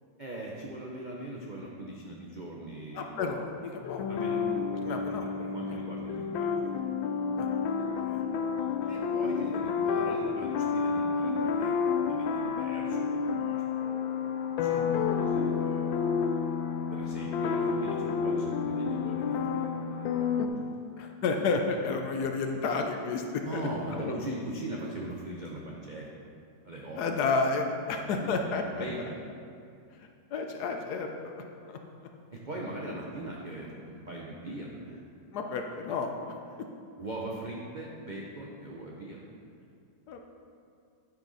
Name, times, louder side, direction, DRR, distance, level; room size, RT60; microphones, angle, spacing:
voice 1, 0.2-3.2 4.1-4.4 4.7-6.8 8.9-14.8 15.1-16.0 16.9-20.7 23.4-26.1 26.6-27.0 28.0-28.1 28.6-29.2 32.3-35.0 36.5-36.6 37.0-39.2 39.6-39.7, right 1 dB, 75° right, -3 dB, 0.4 m, -41 dB
voice 2, 3.0-4.1 4.8-5.3 7.4-7.5 8.0-8.2 14.7-15.0 21.0-23.6 23.9-24.1 27.0-28.8 30.3-31.3 31.7-31.8 35.3-36.3 40.1-40.2, left 4 dB, 70° left, 4 dB, 1.1 m, -31 dB
sound 1, 3.8-20.5, left 6 dB, 85° left, 1.3 m, -30 dB
10.5 x 6.0 x 4.0 m, 2.4 s
omnidirectional pair, 2.0 m